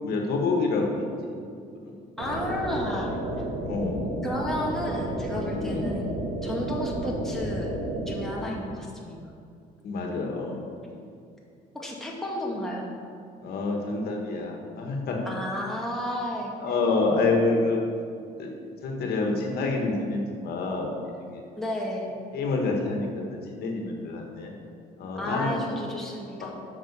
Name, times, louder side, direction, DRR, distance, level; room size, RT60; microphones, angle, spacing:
voice 1, 0.0-1.0 1.8-1.9 3.6-4.1 5.5-5.8 8.4-8.5 9.8-10.6 11.0-11.1 13.4-15.2 16.6-17.8 18.4-18.5 18.8-20.9 22.3-23.1 23.6-24.5 25.0-25.6, left 3 dB, 70° left, 1 dB, 1.5 m, -27 dB
voice 2, 2.2-3.1 4.2-7.7 8.1-9.2 11.7-12.9 15.3-16.5 21.6-22.1 25.1-26.5, left 1 dB, ahead, -4 dB, 1.9 m, -32 dB
sound 1, 2.2-8.3, right 1 dB, 75° right, 1.5 m, -32 dB
7.7 x 6.1 x 6.7 m, 2.5 s
cardioid pair, 110°, 17 cm